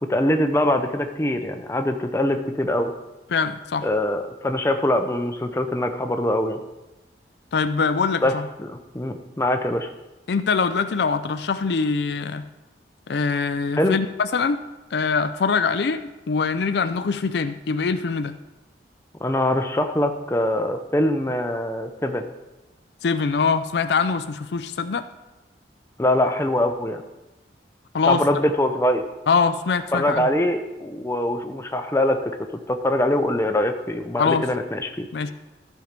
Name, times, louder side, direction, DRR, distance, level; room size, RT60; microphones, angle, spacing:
voice 1, 0.0-2.9 3.8-6.6 8.2-8.3 8.6-9.9 13.8-14.0 19.2-22.2 26.0-27.0 28.0-29.0 29.9-32.3 32.7-35.1, left 1 dB, 15° left, 6 dB, 0.6 m, -23 dB
voice 2, 3.3-3.9 7.5-8.5 10.3-12.4 13.1-14.6 14.9-18.4 23.0-25.1 27.9-28.2 29.3-30.3 34.2-34.5 35.1-35.3, left 5 dB, 65° left, 11 dB, 0.4 m, -23 dB
13.5 x 4.6 x 5.2 m, 1.0 s
head